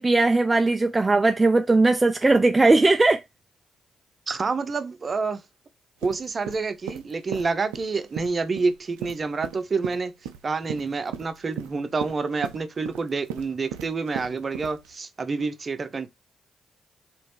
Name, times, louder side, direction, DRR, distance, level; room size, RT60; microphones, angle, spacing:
voice 1, 0.0-3.2, right 2 dB, 25° right, 0.4 m, -19 dB
voice 2, 4.3-5.4 6.0-10.1 10.4-16.1, right 4 dB, 45° right, 0.8 m, -28 dB
sound 1, 6.0-14.9, right 9 dB, 85° right, 0.5 m, -37 dB
3.5 x 3.1 x 4.6 m
hypercardioid pair, 45°, 0 cm